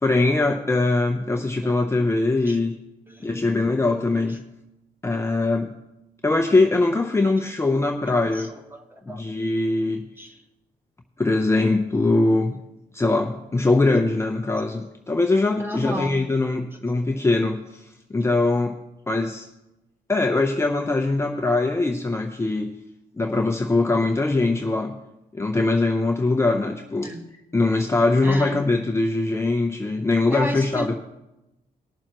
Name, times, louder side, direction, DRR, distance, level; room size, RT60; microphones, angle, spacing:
voice 1, 0.0-2.8 3.2-4.4 5.0-5.7 6.2-8.5 9.1-10.0 11.2-12.6 12.9-17.8 18.1-18.8 19.1-19.5 20.1-22.7 23.2-25.0 25.3-27.1 27.5-30.9, left 2 dB, 15° left, 3 dB, 0.7 m, -22 dB
voice 2, 8.3-9.2 10.2-10.4 15.6-16.2 27.0-27.3 28.2-28.6 30.3-31.0, equal, 15° right, 4 dB, 1.5 m, -32 dB
20.0 x 7.1 x 3.0 m, 0.94 s
cardioid pair, 105°, 17 cm